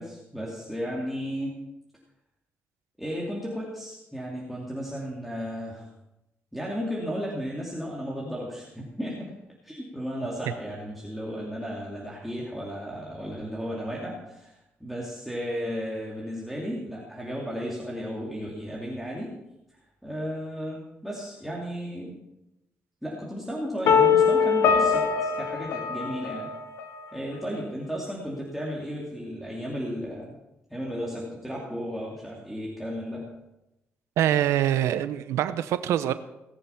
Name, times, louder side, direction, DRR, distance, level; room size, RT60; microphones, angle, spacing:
voice 1, 0.0-1.6 3.0-5.9 6.5-9.3 9.6-19.3 20.0-22.1 23.0-26.5 27.1-30.4 30.7-33.3, equal, ahead, -4 dB, 2.7 m, -34 dB
sound 1, 23.9-26.8, left 6 dB, 75° left, 1.1 m, -22 dB
voice 2, 34.2-36.1, right 11 dB, 90° right, 13 dB, 0.7 m, -24 dB
18.5 x 6.9 x 5.8 m, 0.93 s
cardioid pair, 95°, 5 cm